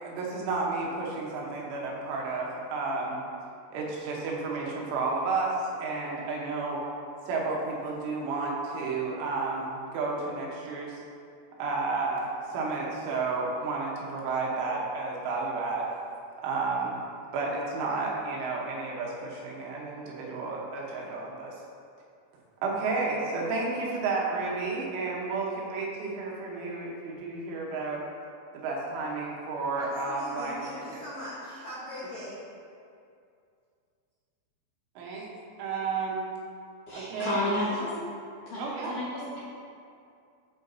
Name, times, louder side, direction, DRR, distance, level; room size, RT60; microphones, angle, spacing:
voice 1, 0.0-3.2 3.7-6.8 7.3-11.0 11.6-15.9 16.4-17.0 17.3-21.5 22.6-28.0 28.5-30.6 30.9-31.0 35.0-35.3 35.6-36.3 36.9-37.5 38.6-38.9, right 3 dB, 85° right, -3 dB, 3.5 m, -31 dB
voice 2, 29.7-32.4, left 1 dB, 85° left, -9 dB, 1.5 m, -40 dB
voice 3, 36.9-38.0 38.5-39.4, left 2 dB, 60° left, -10 dB, 2.2 m, -32 dB
13.0 x 4.8 x 2.7 m, 2.4 s
omnidirectional pair, 5.4 m